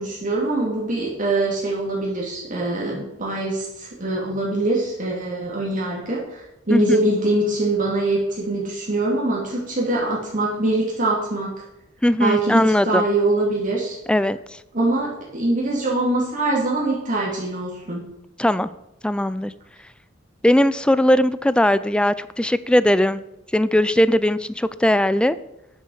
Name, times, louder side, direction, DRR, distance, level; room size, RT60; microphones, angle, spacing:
voice 1, 0.0-11.5 12.2-14.0 14.7-18.0, right 2 dB, 40° right, -4 dB, 2.6 m, -23 dB
voice 2, 12.0-13.0 14.1-14.6 18.4-18.7 19.0-19.5 20.4-23.2 23.5-25.4, left 1 dB, 5° left, 15 dB, 0.4 m, -19 dB
9.9 x 7.1 x 6.3 m, 0.91 s
head